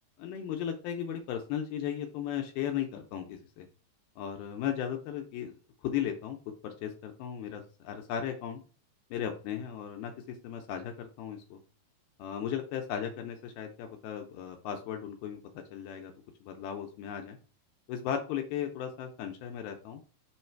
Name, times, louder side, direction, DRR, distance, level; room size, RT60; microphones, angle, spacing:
voice 1, 0.2-3.7 4.2-5.5 5.8-6.4 6.6-8.6 9.1-11.6 12.2-16.1 16.4-17.4 17.9-20.0, left 9 dB, 80° left, 4 dB, 2.2 m, -36 dB
7.0 x 3.2 x 4.5 m, 0.38 s
omnidirectional pair, 5.1 m